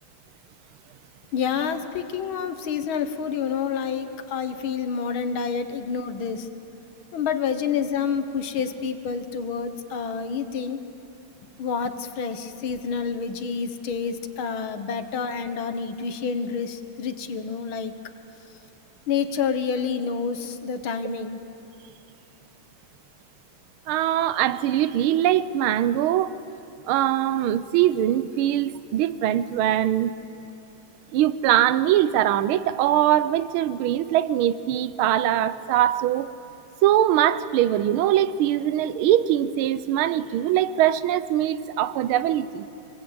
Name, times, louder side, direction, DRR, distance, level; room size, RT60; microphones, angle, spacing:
voice 1, 1.3-6.5 7.1-10.8 11.6-17.9 19.1-21.4, left 6 dB, 70° left, 9 dB, 1.9 m, -28 dB
voice 2, 23.9-26.3 26.9-30.1 31.1-36.3 36.8-42.7, right 12 dB, 80° right, 15 dB, 1.5 m, -22 dB
25.5 x 21.0 x 8.7 m, 2.9 s
omnidirectional pair, 2.4 m